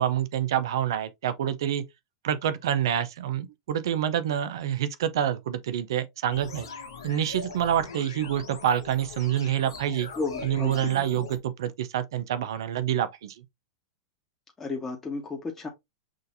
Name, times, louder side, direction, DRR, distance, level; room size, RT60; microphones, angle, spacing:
voice 1, 0.0-1.8 2.2-6.7 7.0-10.1 10.4-13.3, right 10 dB, 70° right, 0.6 m, -27 dB
sound 1, 6.3-11.4, left 5 dB, 80° left, 1.1 m, -41 dB
voice 2, 10.2-10.9 14.6-15.7, left 3 dB, 15° left, 1.2 m, -33 dB
6.2 x 2.6 x 2.6 m
hypercardioid pair, 105°, 2 cm